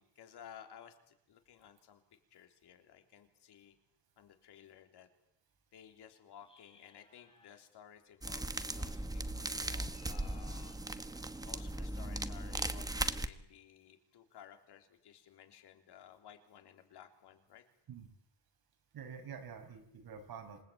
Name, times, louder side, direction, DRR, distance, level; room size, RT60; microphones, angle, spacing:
voice 1, 0.0-2.0 2.3-3.7 4.2-5.1 5.7-10.8 11.4-17.6, left 9 dB, 75° left, 5 dB, 3.5 m, -56 dB
sound 1, 6.4-7.6 9.7-10.8, left 2 dB, 15° left, 7.4 m, -64 dB
sound 2, 8.2-13.3, right 1 dB, 10° right, 1.1 m, -38 dB
voice 2, 18.9-20.6, right 6 dB, 60° right, 5 dB, 5.6 m, -47 dB
27.0 x 19.5 x 8.7 m, 0.78 s
cardioid pair, 145°, 40 cm